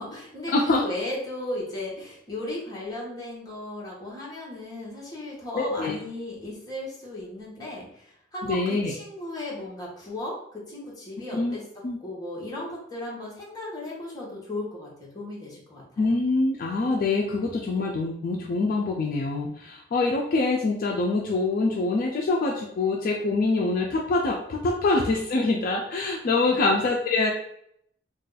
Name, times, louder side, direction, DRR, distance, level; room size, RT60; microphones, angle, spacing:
voice 1, 0.0-16.1 26.5-26.6, left 1 dB, 20° left, -5 dB, 0.9 m, -36 dB
voice 2, 0.5-0.8 5.6-6.0 8.4-8.9 11.3-11.5 11.8-12.0 16.0-27.3, left 3 dB, 50° left, 0 dB, 0.3 m, -25 dB
2.5 x 2.3 x 3.9 m, 0.71 s
head